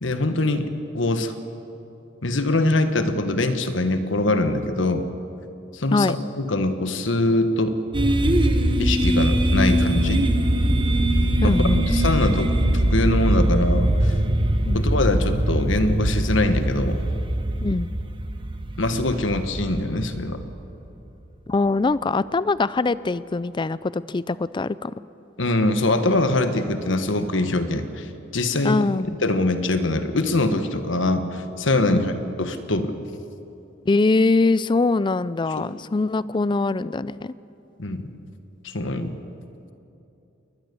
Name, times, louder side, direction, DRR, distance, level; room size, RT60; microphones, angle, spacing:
voice 1, 0.0-0.7 0.9-1.3 2.2-5.1 5.7-7.8 8.8-10.2 11.4-11.6 11.9-12.5 12.9-14.1 14.7-17.0 18.8-20.4 25.4-28.9 29.2-32.9 35.6-35.7 37.8-38.0 38.6-39.1, left 2 dB, 65° left, 9 dB, 1.4 m, -23 dB
sound 1, 7.9-20.8, right 1 dB, 25° right, 1.1 m, -22 dB
voice 2, 11.4-11.9 14.7-14.8 17.6-17.9 21.5-24.9 28.6-29.1 31.9-32.0 33.9-37.3, left 3 dB, 25° left, 18 dB, 0.4 m, -22 dB
22.0 x 19.5 x 6.8 m, 2.8 s
head